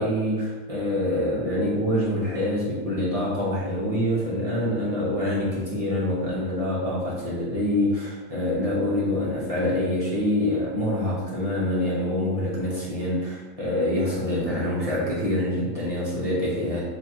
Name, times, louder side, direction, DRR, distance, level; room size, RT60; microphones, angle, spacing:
voice 1, 0.0-16.8, left 1 dB, 30° right, -7 dB, 0.8 m, -25 dB
6.8 x 2.6 x 2.9 m, 1.2 s
omnidirectional pair, 1.9 m